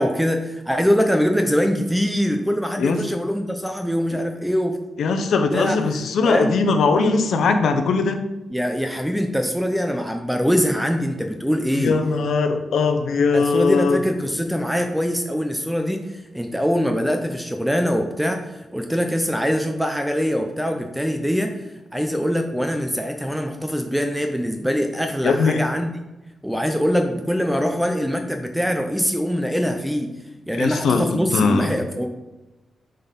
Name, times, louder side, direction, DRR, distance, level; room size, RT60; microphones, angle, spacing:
voice 1, 0.0-4.8 5.5-5.8 6.2-6.5 8.5-12.0 13.3-25.9 26.4-30.1 30.5-32.1, equal, ahead, 4 dB, 0.7 m, -23 dB
voice 2, 5.0-8.2 11.7-14.0 25.2-25.6 30.6-31.7, left 4 dB, 80° left, 7 dB, 0.8 m, -20 dB
6.5 x 4.0 x 5.3 m, 1.0 s
cardioid pair, 90°, 0 cm